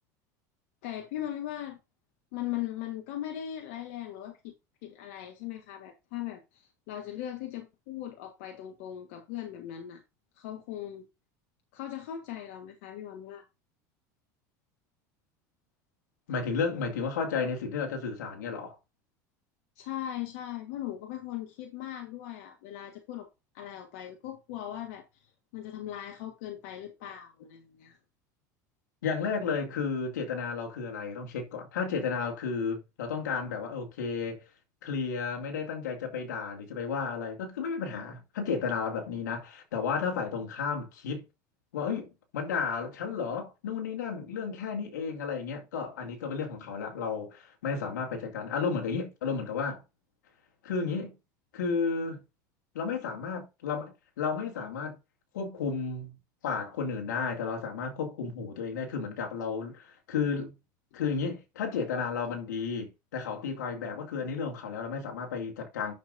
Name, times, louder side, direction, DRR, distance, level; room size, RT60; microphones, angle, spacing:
voice 1, 0.8-1.8 2.3-4.5 4.8-10.0 10.4-11.0 11.7-13.4 19.8-23.3 23.5-28.0, left 12 dB, 70° left, 1.5 m, -39 dB
voice 2, 16.3-18.8 29.0-34.4 34.8-41.2 41.7-42.1 42.3-49.8 50.6-51.1 51.5-52.2 52.7-55.0 55.3-56.1 56.4-60.5 60.9-65.9, left 5 dB, 90° left, 2.2 m, -33 dB
10.0 x 6.9 x 2.6 m
supercardioid pair, 100°, 10 cm